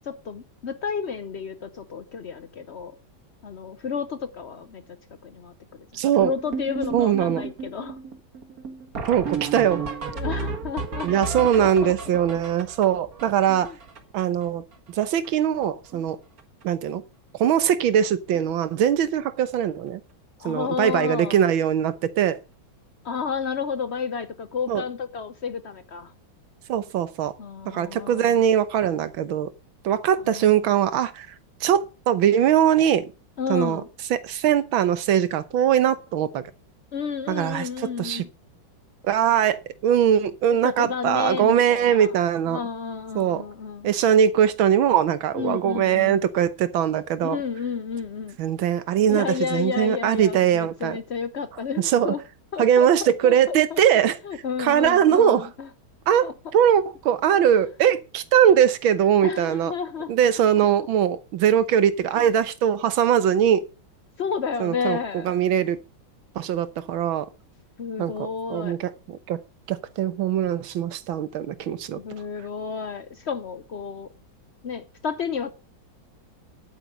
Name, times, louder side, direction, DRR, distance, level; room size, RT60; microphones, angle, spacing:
voice 1, 0.0-3.0 3.4-4.8 5.2-8.0 9.6-9.7 10.1-11.1 11.4-11.9 13.6-13.8 20.4-21.5 23.0-26.1 27.4-28.4 30.2-30.7 33.4-33.9 36.9-38.3 40.5-42.1 42.5-43.9 45.3-46.2 47.2-48.4 49.1-52.2 52.5-53.8 54.2-55.7 56.2-56.3 59.2-60.1 62.1-62.2 64.2-65.4 67.8-68.8 72.0-74.1 74.6-75.5, left 6 dB, 70° left, 0.6 m, -31 dB
voice 2, 5.9-6.3 6.9-7.4 9.1-9.8 11.0-13.7 14.1-14.6 15.0-16.2 16.6-17.0 17.4-20.0 20.5-22.4 24.7-24.8 26.7-27.4 27.7-29.5 29.8-31.3 31.6-33.1 33.5-33.8 34.1-36.4 37.3-38.2 39.0-42.6 43.2-43.4 43.8-47.4 48.4-51.0 51.9-52.1 52.6-54.2 54.6-55.5 56.1-59.7 60.1-63.6 64.6-65.0 65.3-65.8 66.4-67.3 68.0-69.4 69.7-72.0, right 9 dB, 80° right, 1.7 m, -21 dB
sound 1, 6.2-14.4 14.7-14.8 15.0-15.3 15.5-16.1 16.4-16.6 17.4-17.5 18.0-18.1 18.3-18.5 20.8-20.9 23.2-23.3, right 4 dB, 45° right, 2.0 m, -33 dB
10.5 x 9.0 x 5.1 m
omnidirectional pair, 2.2 m